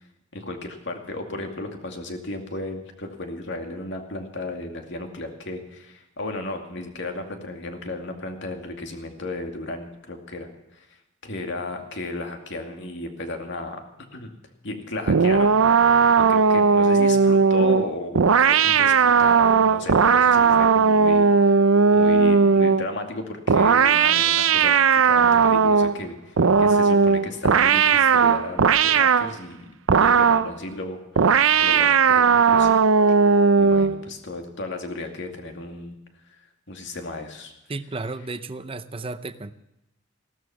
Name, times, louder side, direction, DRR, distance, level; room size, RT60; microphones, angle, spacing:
voice 1, 0.3-10.9 11.2-13.8 14.1-14.3 14.6-15.5 16.3-21.6 21.9-29.6 30.0-32.8 33.1-33.2 33.6-35.9 36.7-37.5, left 2 dB, 60° left, 4 dB, 2.3 m, -34 dB
sound 1, 15.1-22.9 23.5-26.0 26.4-29.3 29.9-30.5 31.2-34.0, right 5 dB, 85° right, 0.6 m, -17 dB
voice 2, 37.7-39.5, right 3 dB, 30° right, 12 dB, 0.7 m, -33 dB
16.5 x 13.0 x 6.0 m, 0.91 s
head